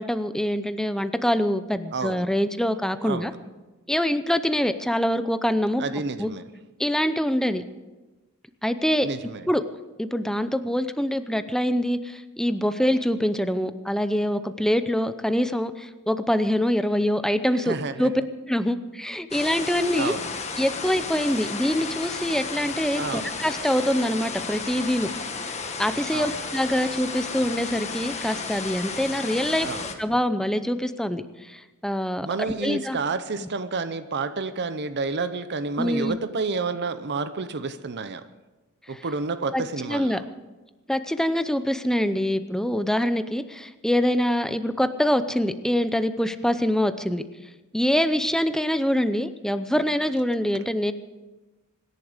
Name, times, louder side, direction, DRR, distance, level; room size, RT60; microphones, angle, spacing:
voice 1, 0.0-3.3 3.9-5.8 6.2-6.3 6.8-7.6 8.6-9.1 9.5-9.6 10.0-18.1 18.5-20.1 20.6-25.1 25.8-29.7 30.0-32.3 32.6-33.0 35.8-36.2 38.9-39.0 39.5-40.2 40.9-47.2 47.7-50.9, equal, ahead, 11 dB, 0.6 m, -24 dB
voice 2, 1.9-2.3 3.0-3.4 5.8-6.5 9.0-9.5 17.6-18.1 20.0-20.3 23.0-23.3 26.1-26.4 29.6-29.9 32.2-38.2 38.9-40.2, right 4 dB, 50° right, 11 dB, 0.7 m, -30 dB
sound 1, 19.3-30.0, left 4 dB, 30° left, 1.4 m, -33 dB
25.5 x 11.0 x 5.0 m, 1.2 s
head